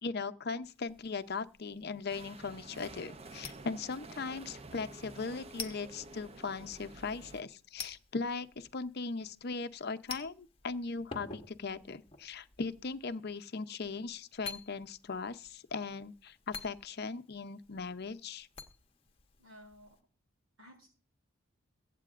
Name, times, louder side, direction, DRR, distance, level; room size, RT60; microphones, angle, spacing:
voice 1, 0.0-18.5, left 4 dB, 50° left, 0.6 m, -39 dB
sound 1, 0.6-20.0, left 4 dB, 30° left, 1.1 m, -51 dB
sound 2, 2.1-7.4, right 2 dB, 30° right, 0.6 m, -50 dB
voice 2, 19.4-19.9 20.6-20.9, equal, 80° right, 6.8 m, -55 dB
23.0 x 8.3 x 2.5 m
head